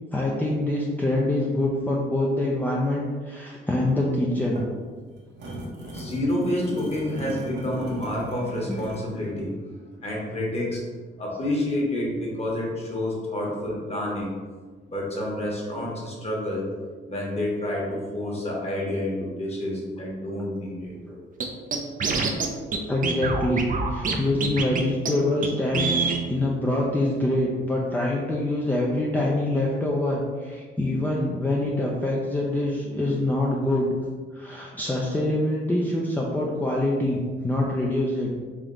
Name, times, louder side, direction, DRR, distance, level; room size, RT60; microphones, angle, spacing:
voice 1, 0.1-4.7 8.7-8.8 21.1-21.2 22.8-23.6 23.9-34.0 34.3-38.3, left 1 dB, 10° left, -4 dB, 0.5 m, -25 dB
sound 1, 4.3-9.1, right 1 dB, 60° right, 1.0 m, -37 dB
voice 2, 5.8-9.6 10.0-10.8 11.2-14.3 14.9-16.7 17.1-20.9, left 1 dB, 30° left, -3 dB, 1.3 m, -29 dB
Scratching (performance technique), 21.4-21.5 21.7-22.5 22.7-22.8 23.0-24.2 24.4-24.8 25.1-25.2 25.4-25.5 25.7-26.2, right 4 dB, 40° right, 0.6 m, -25 dB
3.5 x 2.9 x 3.7 m, 1.5 s
cardioid pair, 90°, 20 cm